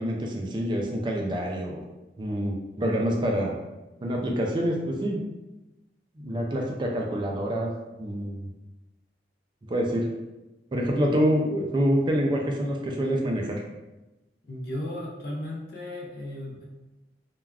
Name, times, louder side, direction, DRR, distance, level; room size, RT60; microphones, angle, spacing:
voice 1, 0.0-1.8 2.2-3.5 4.0-5.2 6.2-7.7 8.0-8.5 9.7-10.1 10.7-13.6, equal, 25° right, 0 dB, 0.3 m, -26 dB
voice 2, 14.5-16.6, left 1 dB, 60° left, -2 dB, 0.6 m, -35 dB
3.3 x 2.3 x 2.3 m, 1.0 s
head